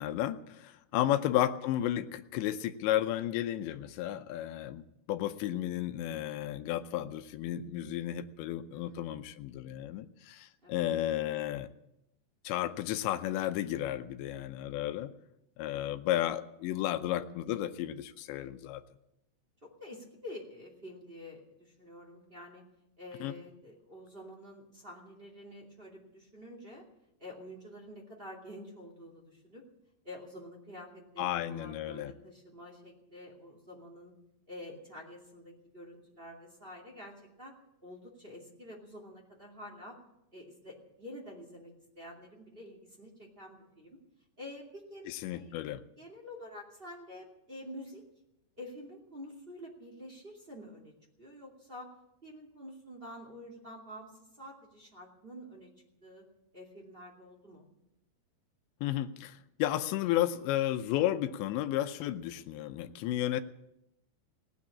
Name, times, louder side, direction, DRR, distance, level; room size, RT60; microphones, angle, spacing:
voice 1, 0.0-11.7 12.4-15.1 15.6-18.8 23.2-23.3 31.2-32.1 45.1-45.8 58.8-63.4, left 13 dB, 90° left, 9 dB, 3.0 m, -33 dB
voice 2, 8.7-9.4 10.6-10.9 16.9-17.1 19.6-22.6 23.0-26.8 27.2-29.6 30.0-34.1 34.5-37.5 37.8-40.0 40.3-44.0 44.4-45.6 46.0-48.0 48.6-50.9 51.2-51.9 52.2-55.7 56.0-56.2 56.5-57.7, left 1 dB, 20° right, 0 dB, 1.6 m, -48 dB
18.0 x 9.4 x 8.4 m, 0.84 s
omnidirectional pair, 5.0 m